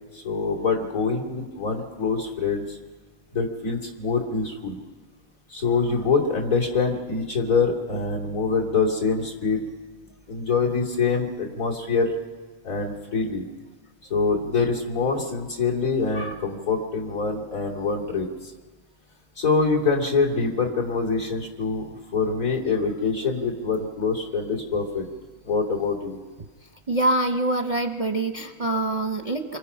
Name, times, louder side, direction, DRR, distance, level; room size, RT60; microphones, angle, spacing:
voice 1, 0.1-2.8 3.3-4.8 5.5-9.6 10.3-12.1 12.6-13.4 14.1-18.5 19.4-21.9 22.1-25.1 25.4-26.2, left 4 dB, 60° left, -1 dB, 3.3 m, -25 dB
voice 2, 26.9-29.6, right 1 dB, 35° right, 5 dB, 0.7 m, -25 dB
27.5 x 23.5 x 5.7 m, 1.4 s
omnidirectional pair, 1.6 m